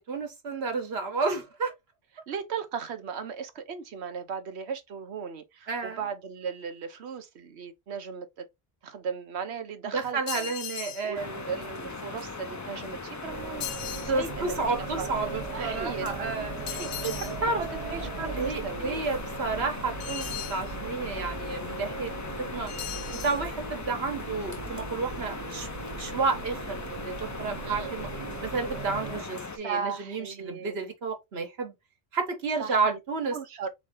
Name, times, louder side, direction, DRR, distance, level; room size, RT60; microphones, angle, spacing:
voice 1, 0.1-1.7 5.7-6.0 9.9-11.3 14.1-16.5 17.0-17.1 17.4-17.6 18.4-22.7 23.1-25.7 25.9-28.1 28.4-31.7 32.1-33.4, right 4 dB, 70° right, 1.4 m, -31 dB
voice 2, 2.3-8.5 8.8-10.5 11.0-13.7 14.0-14.5 15.0-15.1 15.5-16.1 16.6-17.3 17.6-19.1 27.6-28.0 29.5-30.8 32.6-33.0 33.3-33.7, right 6 dB, 85° right, 1.1 m, -37 dB
sound 1, 10.3-11.1 13.6-14.1 16.7-17.4 20.0-20.6 22.7-23.4, left 10 dB, 75° left, 0.9 m, -37 dB
sound 2, 11.1-29.6, left 3 dB, 30° left, 0.3 m, -39 dB
sound 3, 13.3-29.2, right 4 dB, 40° right, 0.6 m, -39 dB
3.7 x 3.2 x 3.7 m
omnidirectional pair, 1.1 m